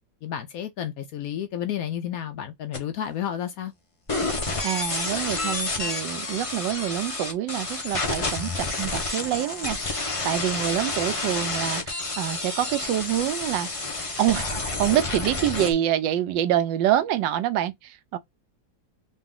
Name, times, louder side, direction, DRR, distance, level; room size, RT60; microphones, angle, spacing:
voice 1, 0.2-3.7, left 10 dB, 75° left, 0.8 m, -31 dB
sound 1, 2.7-2.8 4.1-15.7, left 3 dB, 40° left, 0.4 m, -29 dB
voice 2, 4.6-13.7 14.2-14.5 14.8-18.2, right 12 dB, 85° right, 1.3 m, -26 dB
3.8 x 2.5 x 3.6 m
omnidirectional pair, 2.0 m